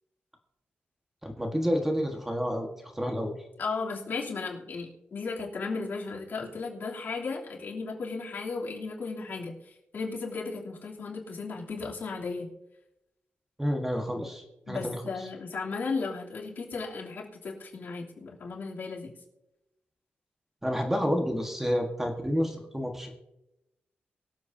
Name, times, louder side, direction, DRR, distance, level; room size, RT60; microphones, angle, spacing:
voice 1, 1.2-3.3 13.6-15.0 20.6-23.2, equal, 10° right, 3 dB, 1.5 m, -29 dB
voice 2, 3.6-12.5 14.7-19.1, left 4 dB, 60° left, -3 dB, 3.1 m, -35 dB
23.5 x 8.0 x 2.8 m, 0.90 s
wide cardioid pair, 110°, 4 cm